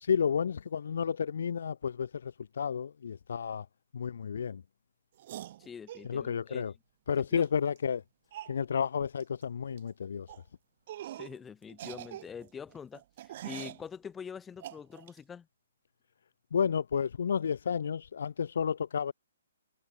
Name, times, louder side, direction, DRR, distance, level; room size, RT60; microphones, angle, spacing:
voice 1, 0.0-3.7 3.9-4.6 6.0-6.7 7.1-8.0 8.5-10.3 16.5-19.1, left 7 dB, 70° left, 0.4 m, -31 dB
sound 1, 5.2-6.1 7.4-7.5 7.8-7.9 8.3-8.6 9.2-9.4 9.7-9.9 10.3-10.4 10.9-11.4 11.7-13.8 14.6-15.2, right 13 dB, 45° right, 2.2 m, -44 dB
voice 2, 5.6-6.6 7.3-7.5 11.2-15.5, left 7 dB, 10° left, 1.0 m, -45 dB
hypercardioid pair, 150°, 0 cm